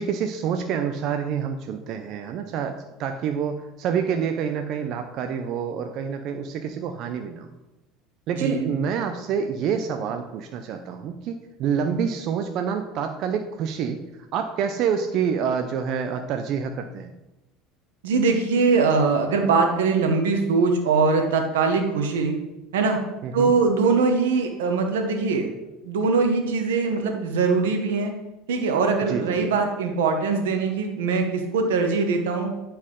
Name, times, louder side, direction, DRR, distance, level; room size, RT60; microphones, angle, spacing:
voice 1, 0.0-7.5 8.3-14.0 14.3-17.1 23.2-23.5 29.1-29.5, right 7 dB, 55° right, 6 dB, 0.6 m, -27 dB
voice 2, 8.4-8.7 18.0-22.3 22.7-23.0 23.3-25.5 25.8-28.1 28.5-32.5, right 4 dB, 90° right, 4 dB, 1.0 m, -22 dB
9.5 x 4.3 x 3.8 m, 0.99 s
supercardioid pair, 100°, 0 cm